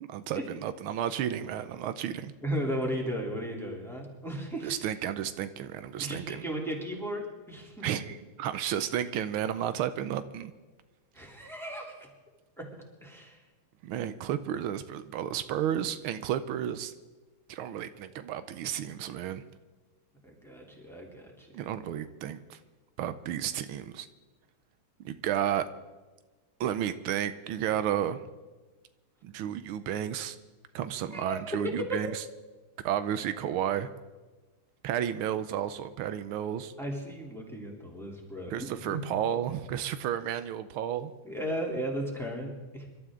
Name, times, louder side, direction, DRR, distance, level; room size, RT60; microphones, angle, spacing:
voice 1, 0.1-2.3 4.6-6.4 7.8-10.5 13.8-16.9 17.5-19.4 21.5-22.6 23.0-24.1 25.1-25.7 26.6-28.2 29.2-30.4 30.8-32.2 32.8-33.9 34.8-36.7 38.5-41.1, right 10 dB, 90° right, 12 dB, 1.6 m, -32 dB
voice 2, 2.4-4.7 6.0-7.2 7.5-8.0 11.1-12.1 12.6-12.7 13.0-13.4 20.2-21.8 31.1-32.0 36.8-39.0 41.2-42.9, equal, ahead, -2 dB, 3.0 m, -35 dB
26.5 x 12.5 x 3.8 m, 1.2 s
omnidirectional pair, 2.3 m